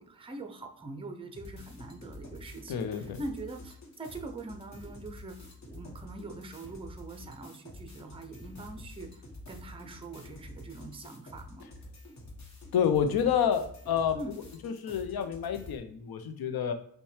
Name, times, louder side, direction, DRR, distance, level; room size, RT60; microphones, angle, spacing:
voice 1, 0.0-11.7 14.1-14.3, right 2 dB, 15° right, 4 dB, 0.4 m, -43 dB
sound 1, 1.3-15.8, left 1 dB, 50° left, 1.2 m, -48 dB
voice 2, 2.7-3.2 12.7-14.2 14.6-16.7, left 8 dB, 85° left, 8 dB, 0.5 m, -28 dB
5.5 x 2.2 x 3.2 m, 0.66 s
wide cardioid pair, 110°, 36 cm